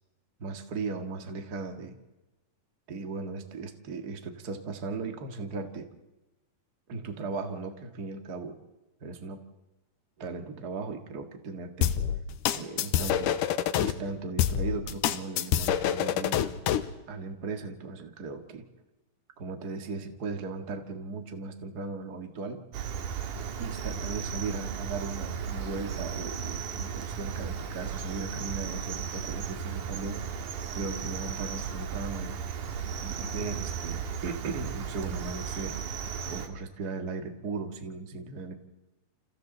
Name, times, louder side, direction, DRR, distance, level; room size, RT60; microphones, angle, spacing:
voice 1, 0.4-2.0 2.9-5.9 6.9-8.6 9.0-9.4 10.2-11.9 12.5-13.4 13.8-16.6 17.1-18.7 19.4-22.6 23.6-30.2 30.7-32.4 33.0-35.8 36.3-38.6, right 4 dB, 35° right, 5 dB, 2.1 m, -37 dB
sound 1, 11.8-13.9 14.4-16.9, left 10 dB, 85° left, 2.5 m, -26 dB
Cricket, 22.7-36.5, right 7 dB, 80° right, 3.2 m, -35 dB
29.5 x 29.0 x 4.1 m, 1.0 s
omnidirectional pair, 3.6 m